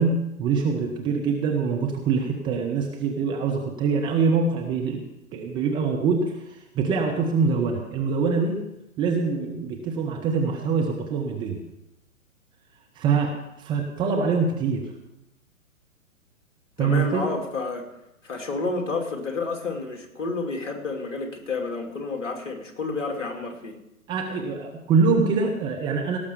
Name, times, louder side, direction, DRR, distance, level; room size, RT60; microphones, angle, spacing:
voice 1, 0.0-5.0 5.3-8.6 9.0-11.6 12.9-14.9 16.8-17.3 24.1-26.2, right 5 dB, 10° right, 1 dB, 0.6 m, -24 dB
voice 2, 16.8-17.9 18.2-23.8, left 3 dB, 55° left, 4 dB, 2.6 m, -30 dB
17.5 x 6.7 x 7.0 m, 0.87 s
figure-of-eight pair, 125°, 42 cm